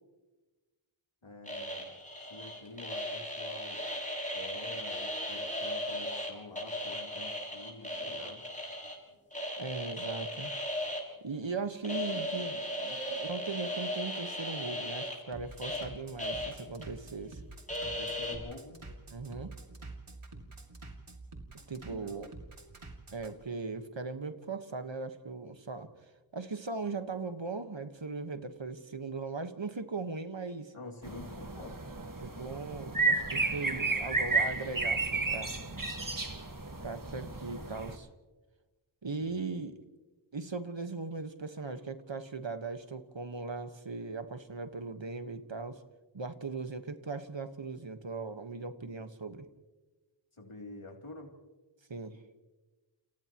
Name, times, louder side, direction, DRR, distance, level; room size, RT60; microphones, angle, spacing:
voice 1, 1.2-1.9 2.3-3.8 4.3-8.4 17.8-18.8 21.9-22.2 30.7-31.9 39.2-39.4 50.4-51.3, left 2 dB, 85° left, 1 dB, 3.2 m, -48 dB
sound 1, 1.5-6.3 6.6-9.0 9.3-11.0 11.8-15.8 16.2-16.5 16.8-16.9 17.7-18.3, left 1 dB, 15° left, 6.4 m, -37 dB
Bass drum, 7.3-23.3, right 2 dB, 85° right, 2.6 m, -49 dB
voice 2, 9.6-10.5 11.2-17.4 19.1-19.5 21.7-22.3 23.1-25.9 26.3-30.7 32.2-35.5 36.8-38.1 39.0-39.8 40.3-45.8 46.1-49.5 51.9-52.2, right 4 dB, 65° right, 8 dB, 1.5 m, -39 dB
sound 2, 31.0-37.9, right 3 dB, 40° right, 1.8 m, -32 dB
29.5 x 29.5 x 3.0 m, 1.2 s
wide cardioid pair, 45°, 48 cm